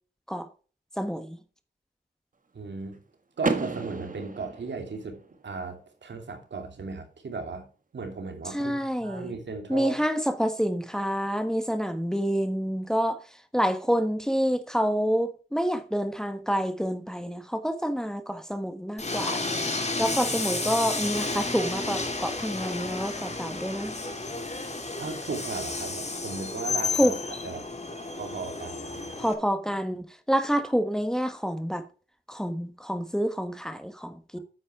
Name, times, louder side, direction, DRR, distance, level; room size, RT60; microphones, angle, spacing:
voice 1, 1.0-1.4 8.5-9.3 9.7-13.2 13.5-19.5 20.0-23.9 27.0-27.1 29.2-31.8 32.3-34.4, equal, 5° left, 1.3 m, -28 dB
voice 2, 2.5-3.0 3.4-5.2 5.4-7.7 7.9-10.0 25.0-27.2 27.4-27.7 28.1-29.2 34.3-34.4, right 4 dB, 75° right, 2.8 m, -36 dB
Car / Door, 3.4-5.3, right 3 dB, 45° right, 1.7 m, -32 dB
Train, 19.0-29.3, left 3 dB, 35° left, 2.7 m, -32 dB
9.5 x 8.5 x 3.6 m
cardioid pair, 70°, 18 cm